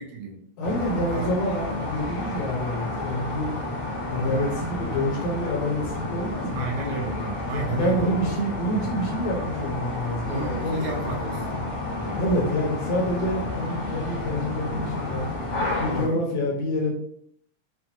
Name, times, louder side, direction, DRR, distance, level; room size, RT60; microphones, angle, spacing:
voice 1, 0.6-3.5 4.1-6.7 7.5-10.9 11.5-11.7 12.2-15.2 15.8-16.9, equal, 75° left, -1 dB, 1.7 m, -27 dB
sound 1, 0.6-16.1, left 2 dB, 40° left, 0.8 m, -31 dB
voice 2, 6.5-8.2 10.3-11.6 15.9-16.2, right 5 dB, 75° right, 0 dB, 2.0 m, -32 dB
5.5 x 2.2 x 2.8 m, 0.65 s
omnidirectional pair, 3.3 m